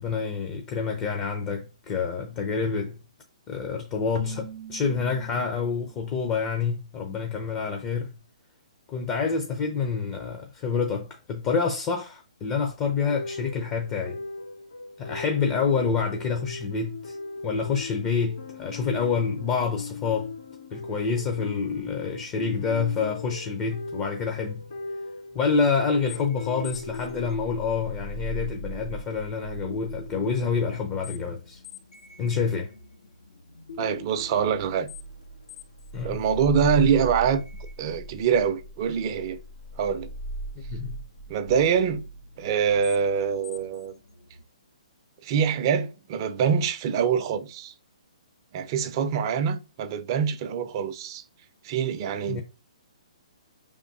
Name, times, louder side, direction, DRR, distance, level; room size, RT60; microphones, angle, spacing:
voice 1, 0.0-3.0 3.5-8.1 8.9-14.2 15.0-17.2 17.4-20.3 20.7-24.7 25.3-31.6 32.2-32.7 35.9-36.2 40.7-41.0 52.3-52.4, left 5 dB, 25° left, 0.6 m, -27 dB
Keyboard (musical), 4.2-6.1, right 6 dB, 80° right, 0.6 m, -43 dB
sound 1, 13.0-27.3, left 4 dB, 60° left, 2.0 m, -39 dB
sound 2, 26.1-44.4, equal, 75° left, 1.0 m, -40 dB
voice 2, 33.8-34.9 36.0-37.4 37.8-39.4 39.8-40.1 41.3-42.0 42.4-43.9 45.2-47.7 48.5-51.2 51.6-52.4, right 7 dB, 40° right, 0.5 m, -25 dB
5.1 x 3.6 x 2.6 m
hypercardioid pair, 135°, 4 cm